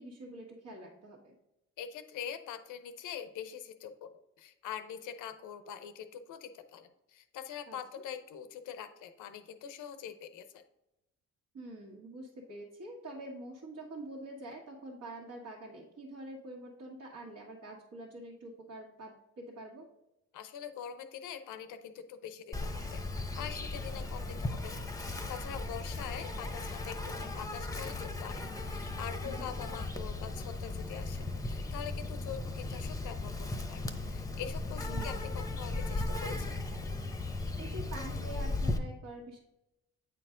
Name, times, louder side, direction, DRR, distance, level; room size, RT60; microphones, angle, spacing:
voice 1, 0.0-1.3 7.7-7.8 11.5-19.9 29.4-29.5 34.8-35.3 37.6-39.4, right 1 dB, 65° right, -3 dB, 1.6 m, -46 dB
voice 2, 1.8-10.6 20.3-36.5, left 8 dB, 85° left, 10 dB, 0.8 m, -44 dB
Insect, 22.5-38.8, left 2 dB, 10° left, 0.8 m, -37 dB
8.7 x 4.5 x 3.8 m, 0.90 s
cardioid pair, 90°, 30 cm